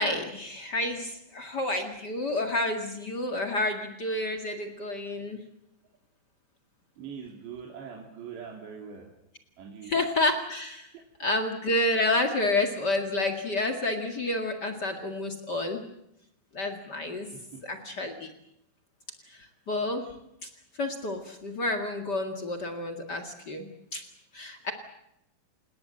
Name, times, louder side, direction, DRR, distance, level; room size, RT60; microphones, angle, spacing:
voice 1, 0.0-5.4 9.8-10.9 11.2-15.8 16.5-17.3 17.6-18.3 19.3-20.1 20.4-20.5 20.8-24.0 24.3-24.7, left 2 dB, 70° left, 4 dB, 0.9 m, -29 dB
voice 2, 7.0-9.1 9.6-9.9 17.3-17.7, right 7 dB, 65° right, 0 dB, 4.8 m, -42 dB
28.0 x 19.5 x 7.7 m, 0.83 s
omnidirectional pair, 5.5 m